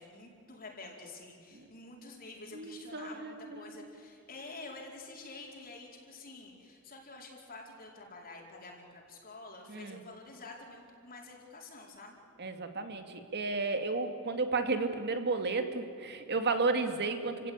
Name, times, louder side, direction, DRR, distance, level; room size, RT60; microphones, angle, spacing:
voice 1, 0.0-12.2, left 3 dB, 45° left, -1 dB, 4.7 m, -48 dB
voice 2, 2.5-3.9 9.7-10.0 12.4-17.5, right 3 dB, 50° right, 7 dB, 2.3 m, -33 dB
29.5 x 17.0 x 9.7 m, 2.6 s
head